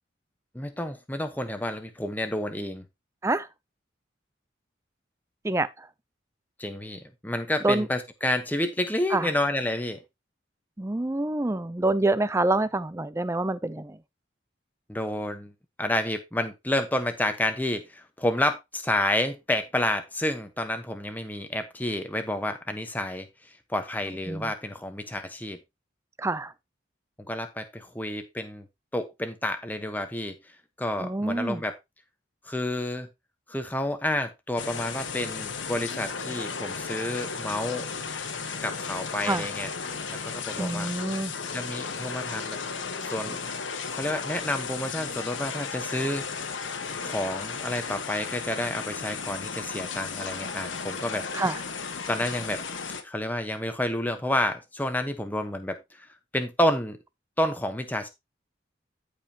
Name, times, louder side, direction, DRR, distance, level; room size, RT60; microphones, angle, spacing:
voice 1, 0.5-2.9 6.6-10.0 14.9-15.5 15.8-25.6 27.3-28.7 28.9-30.3 30.8-31.8 32.5-33.1 33.5-37.9 38.6-39.7 40.1-40.9 41.5-42.6 43.0-43.4 43.9-46.3 47.0-51.3 52.1-52.6 53.0-57.0 57.4-58.1, left 1 dB, 10° left, 1.1 m, -30 dB
voice 2, 5.4-5.9 7.6-7.9 9.1-9.3 10.8-14.0 24.3-24.5 26.2-26.5 31.0-31.6 39.3-39.5 40.6-41.3 51.3-51.6, right 2 dB, 15° right, 0.5 m, -27 dB
sound 1, 34.6-53.0, left 5 dB, 80° left, 1.3 m, -34 dB
14.0 x 5.2 x 2.9 m
head